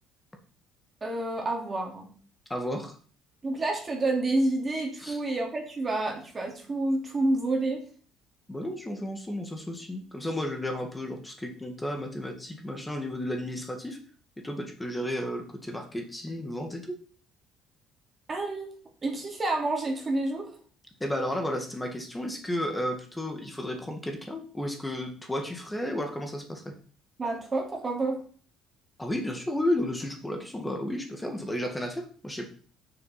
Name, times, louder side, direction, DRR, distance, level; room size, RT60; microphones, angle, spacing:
voice 1, 1.0-2.1 3.4-7.8 18.3-18.7 19.0-20.5 27.2-28.2, right 2 dB, 25° right, 1 dB, 2.7 m, -29 dB
voice 2, 2.5-3.0 5.0-5.2 8.5-14.0 14.4-16.9 21.0-26.7 29.0-32.5, left 1 dB, 10° left, 4 dB, 1.8 m, -33 dB
6.8 x 6.7 x 5.7 m, 0.43 s
cardioid pair, 110°, 0 cm